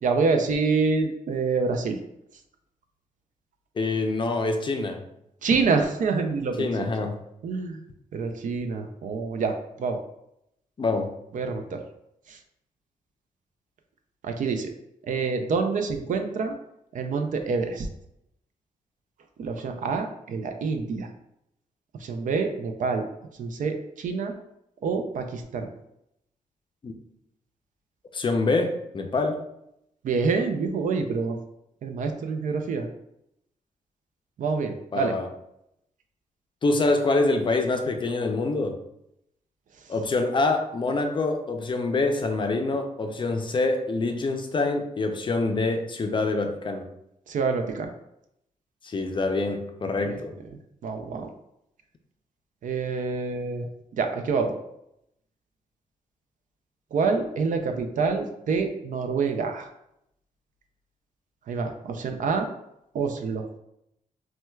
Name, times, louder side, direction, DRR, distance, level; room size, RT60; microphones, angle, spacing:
voice 1, 0.0-2.0 5.4-6.9 7.4-7.8 8.1-10.0 11.3-11.8 12.3-12.4 14.2-14.7 15.0-16.5 16.9-17.9 19.4-21.1 22.0-23.0 23.4-24.4 24.8-25.7 30.0-31.4 31.8-32.9 34.4-35.2 47.3-47.9 50.1-50.2 50.8-51.3 52.6-53.7 54.0-54.5 56.9-59.7 61.5-62.5 62.9-63.5, right 4 dB, 65° right, 5 dB, 0.4 m, -27 dB
voice 2, 3.8-5.0 6.6-7.2 10.8-11.1 26.8-26.9 28.1-29.4 34.9-35.3 36.6-38.7 39.9-46.8 48.8-50.3, left 3 dB, 35° left, 5 dB, 0.4 m, -25 dB
4.3 x 2.2 x 2.2 m, 0.80 s
cardioid pair, 95°, 14 cm